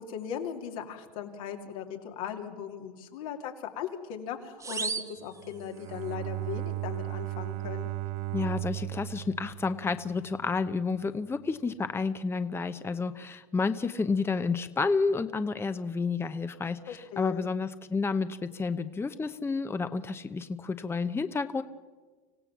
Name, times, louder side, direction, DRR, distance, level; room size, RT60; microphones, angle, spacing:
voice 1, 0.0-7.9 16.9-17.5, left 8 dB, 80° left, 3 dB, 2.9 m, -38 dB
sound 1, 4.6-6.1, right 4 dB, 15° right, 1.2 m, -37 dB
Bowed string instrument, 5.4-10.7, right 16 dB, 75° right, 0.6 m, -36 dB
voice 2, 8.3-21.6, left 4 dB, 15° left, 11 dB, 0.8 m, -30 dB
26.0 x 16.0 x 7.3 m, 1.4 s
supercardioid pair, 115°, 18 cm